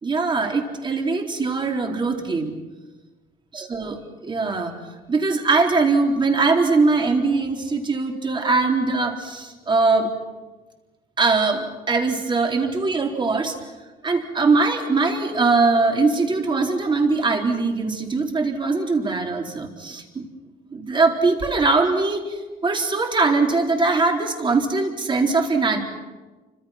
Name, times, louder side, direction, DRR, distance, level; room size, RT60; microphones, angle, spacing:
voice 1, 0.0-2.5 3.5-4.7 5.1-10.1 11.2-13.5 14.0-20.2 20.7-25.8, right 3 dB, 30° right, 2 dB, 4.2 m, -21 dB
29.5 x 25.5 x 6.0 m, 1.2 s
cardioid pair, 110°, 17 cm